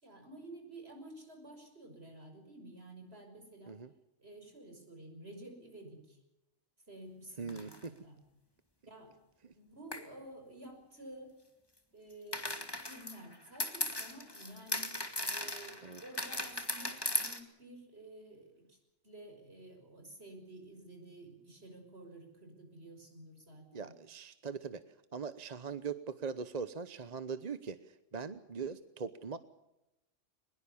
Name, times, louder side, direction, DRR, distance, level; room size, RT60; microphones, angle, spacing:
voice 1, 0.0-3.8 4.2-6.2 6.9-8.2 8.8-9.1 9.5-11.4 11.9-15.0 15.3-18.8 19.0-23.9, right 1 dB, 55° right, 4 dB, 6.3 m, -51 dB
voice 2, 7.4-8.0 9.4-9.5 15.8-16.0 23.7-29.4, right 5 dB, 35° right, 12 dB, 0.9 m, -41 dB
sound 1, 7.5-7.9 9.9-10.1 12.3-17.4, left 1 dB, 20° left, 2.2 m, -37 dB
23.0 x 21.0 x 7.1 m, 0.94 s
omnidirectional pair, 1.3 m